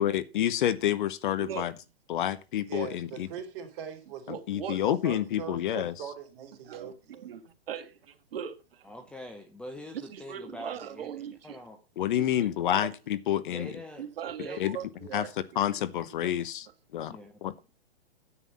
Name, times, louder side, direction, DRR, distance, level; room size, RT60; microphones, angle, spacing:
voice 1, 0.0-1.7 2.1-3.3 4.3-5.9 12.0-13.7 14.6-14.8 15.1-15.3 15.6-16.7 16.9-17.5, left 11 dB, 50° left, 1.0 m, -28 dB
voice 2, 1.4-1.7 4.3-4.8 6.6-6.9 7.2-8.9 10.0-11.6 12.1-12.9 14.0-15.3, right 8 dB, 60° right, 1.7 m, -40 dB
voice 3, 2.6-4.3 4.8-7.3, right 8 dB, 35° right, 3.6 m, -41 dB
voice 4, 8.8-11.1 11.4-11.8 13.5-14.1 14.4-14.6 17.1-17.3, left 1 dB, 5° left, 0.8 m, -44 dB
9.9 x 8.1 x 5.4 m
hypercardioid pair, 140°, 32 cm